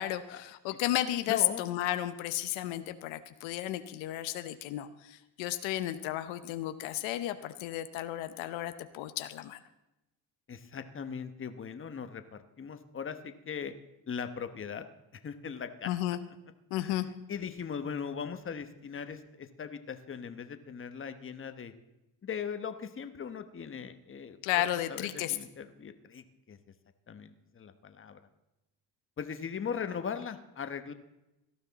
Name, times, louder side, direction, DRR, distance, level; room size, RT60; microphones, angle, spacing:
voice 1, 0.0-9.6 15.8-16.2 16.7-17.1 24.4-25.4, left 14 dB, 90° left, 10 dB, 0.9 m, -33 dB
voice 2, 1.3-1.6 10.5-13.7 14.1-14.9 15.1-15.9 16.7-21.7 22.2-24.6 24.9-26.6 27.1-28.2 29.2-30.9, left 7 dB, 30° left, 9 dB, 1.1 m, -39 dB
18.0 x 12.5 x 4.1 m, 0.96 s
cardioid pair, 105°, 45 cm